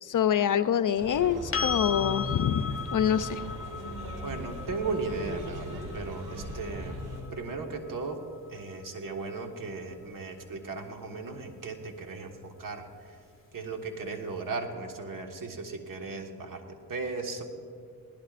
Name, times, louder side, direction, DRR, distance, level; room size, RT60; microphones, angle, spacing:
voice 1, 0.0-3.5, left 9 dB, 60° left, 12 dB, 0.6 m, -26 dB
sound 1, 1.0-7.2, equal, 85° right, 3.5 m, -39 dB
sound 2, 1.5-9.3 12.2-12.3, left 6 dB, 35° left, 0.9 m, -38 dB
voice 2, 4.2-7.0 7.3-8.2 8.5-12.9 13.5-17.4, right 3 dB, 60° right, 4 dB, 1.7 m, -36 dB
21.0 x 17.5 x 2.5 m, 2.3 s
cardioid pair, 65°, 37 cm